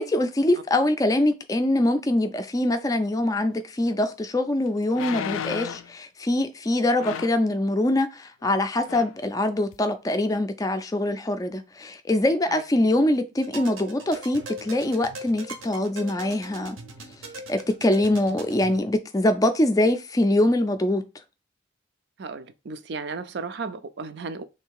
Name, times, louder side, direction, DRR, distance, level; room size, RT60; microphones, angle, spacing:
voice 1, 0.0-16.8 17.5-21.0, left 1 dB, 20° left, 0.4 m, -23 dB
sound 1, 3.9-4.0 4.9-5.9 7.0-7.5 8.4-8.6 8.9-9.2 9.7-9.8, left 8 dB, 90° left, 0.4 m, -33 dB
sound 2, 13.4-18.7, right 1 dB, 80° right, 0.9 m, -40 dB
voice 2, 22.2-24.4, right 4 dB, 55° right, 0.4 m, -34 dB
3.2 x 2.7 x 4.6 m
head